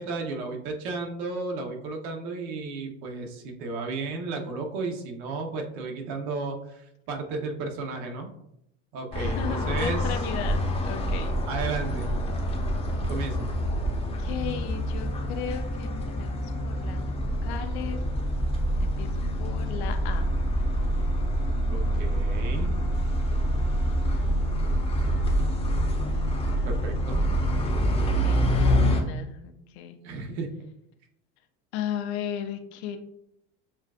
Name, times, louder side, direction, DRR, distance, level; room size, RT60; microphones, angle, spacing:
voice 1, 0.0-8.3 8.9-10.0 11.5-12.1 13.1-13.5 21.7-22.7 26.6-27.2 30.0-30.5, right 3 dB, 75° right, 3 dB, 1.0 m, -33 dB
sound 1, 9.1-29.0, equal, 20° left, 0.8 m, -26 dB
voice 2, 9.2-11.3 13.7-13.9 14.2-18.0 18.8-20.3 27.9-30.0 31.7-33.0, left 9 dB, 80° left, 6 dB, 0.7 m, -36 dB
7.1 x 2.4 x 2.4 m, 0.78 s
supercardioid pair, 120°, 32 cm